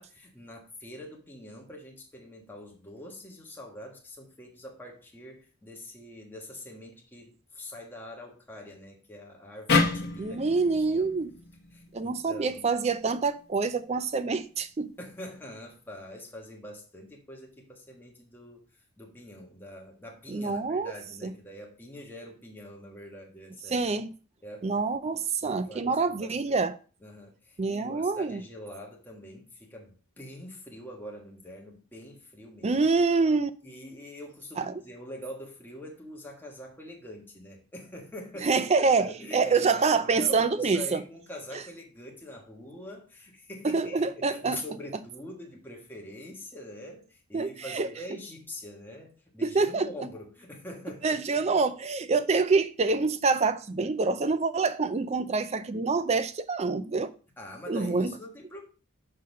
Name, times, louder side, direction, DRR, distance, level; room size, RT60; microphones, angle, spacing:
voice 1, 0.0-10.4 10.7-11.1 11.7-12.7 15.0-18.6 19.0-23.9 24.4-24.9 25.4-26.6 27.0-32.8 33.6-51.4 57.4-58.6, left 1 dB, 10° left, 1.4 m, -44 dB
sound 1, 9.7-12.9, left 3 dB, 45° left, 1.1 m, -29 dB
voice 2, 10.2-11.3 11.9-14.9 20.3-20.9 21.2-21.3 23.7-24.1 24.6-26.8 27.6-28.4 32.6-33.5 34.6-34.7 38.4-41.0 43.6-44.6 47.3-47.9 49.4-49.9 51.0-57.1 57.7-58.1, right 4 dB, 30° right, 0.4 m, -26 dB
6.6 x 4.0 x 5.3 m
head